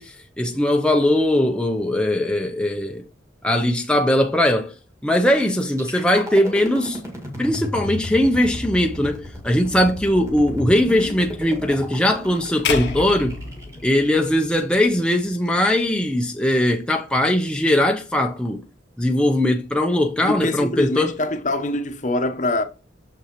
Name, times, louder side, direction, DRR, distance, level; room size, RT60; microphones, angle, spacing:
voice 1, 0.0-3.1 3.4-4.7 5.0-7.0 7.4-13.4 13.8-18.6 19.0-21.2, left 1 dB, 5° left, 0.6 m, -20 dB
sound 1, 5.6-15.6, equal, 15° right, 1.9 m, -34 dB
sound 2, 12.6-14.9, left 5 dB, 70° left, 0.9 m, -29 dB
voice 2, 20.2-22.6, left 1 dB, 40° left, 0.8 m, -24 dB
6.9 x 5.7 x 3.0 m
head